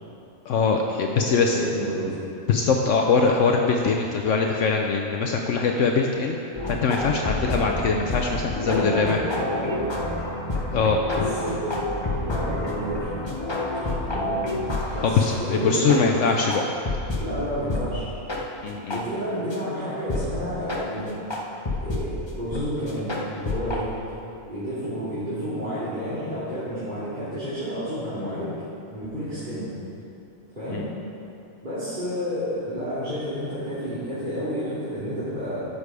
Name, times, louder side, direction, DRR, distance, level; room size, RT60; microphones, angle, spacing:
voice 1, 0.5-1.6 2.5-6.4 6.7-9.2 10.7-11.3 15.0-16.6 18.6-19.0 30.7-30.8, left 4 dB, 70° left, 2 dB, 1.0 m, -22 dB
voice 2, 1.1-2.1 8.6-10.0 11.1-11.8 12.3-13.1 14.1-14.4 14.9-16.2 17.2-18.0 18.9-21.1 21.8-23.9 24.5-28.5 28.9-29.7 30.5-30.8 31.6-35.6, equal, 35° right, -13 dB, 2.6 m, -30 dB
sound 1, 6.5-17.3 17.7-17.9 18.3-18.4 18.9-19.0 19.5-19.6 20.1-20.3 20.7-20.8 21.3-22.1 22.5-22.6 22.9-23.8, left 2 dB, 25° left, 0.9 m, -29 dB
12.0 x 6.8 x 4.8 m, 2.7 s
omnidirectional pair, 1.4 m